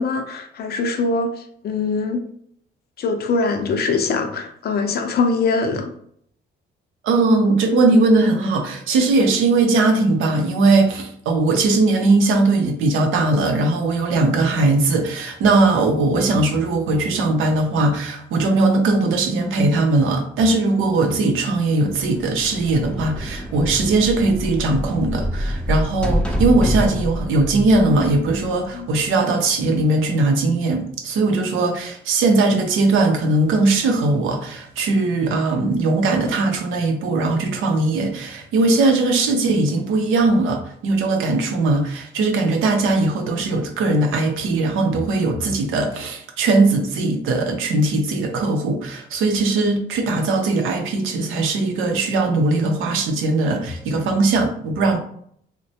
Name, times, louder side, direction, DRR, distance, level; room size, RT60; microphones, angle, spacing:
voice 1, 0.0-2.2 3.0-5.9 28.7-28.9, left 4 dB, 55° left, 0.5 m, -22 dB
voice 2, 7.0-55.0, right 2 dB, 85° right, 0.6 m, -19 dB
sound 1, 21.9-28.7, equal, 5° left, 0.5 m, -26 dB
3.1 x 2.1 x 2.7 m
cardioid pair, 90°, 20 cm